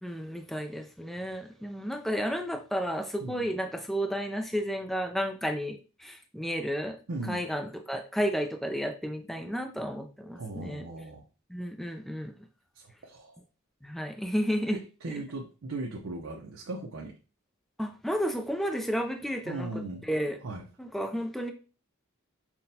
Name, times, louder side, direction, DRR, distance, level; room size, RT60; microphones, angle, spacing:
voice 1, 0.0-7.0 7.3-10.8 11.5-12.3 13.8-14.8 17.8-20.4 20.8-21.5, equal, ahead, 5 dB, 0.3 m, -32 dB
voice 2, 7.1-7.4 10.4-11.2 13.0-13.4 14.7-17.1 19.4-20.0 20.4-20.7, right 2 dB, 80° right, 0 dB, 0.6 m, -38 dB
5.7 x 2.1 x 2.7 m, 0.34 s
head